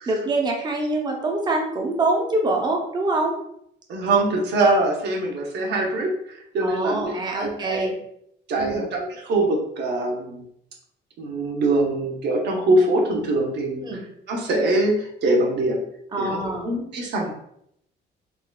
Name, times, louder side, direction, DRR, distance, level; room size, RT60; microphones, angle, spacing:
voice 1, 0.1-3.4 6.6-8.0 8.6-8.8 13.8-14.0 16.1-16.7, right 2 dB, 25° right, 1 dB, 0.5 m, -25 dB
voice 2, 3.9-7.9 8.5-10.4 11.2-13.9 14.3-15.8 16.2-17.3, right 2 dB, 65° right, 0 dB, 0.7 m, -23 dB
3.7 x 2.1 x 2.2 m, 0.73 s
cardioid pair, 165°, 19 cm